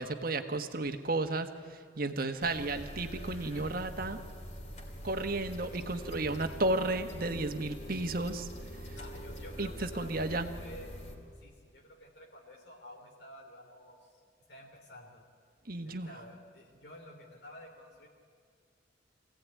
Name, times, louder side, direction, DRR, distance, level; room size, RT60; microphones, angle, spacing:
voice 1, 0.0-4.2 5.0-8.5 8.8-9.0 9.6-10.5 15.6-16.1, right 2 dB, 50° right, 7 dB, 1.5 m, -33 dB
sound 1, 2.4-11.2, equal, 40° left, 3.3 m, -44 dB
voice 2, 9.0-10.9 11.4-14.2 14.5-15.2 15.8-18.1, left 1 dB, 65° left, 0 dB, 3.1 m, -52 dB
25.0 x 17.0 x 9.5 m, 2.1 s
head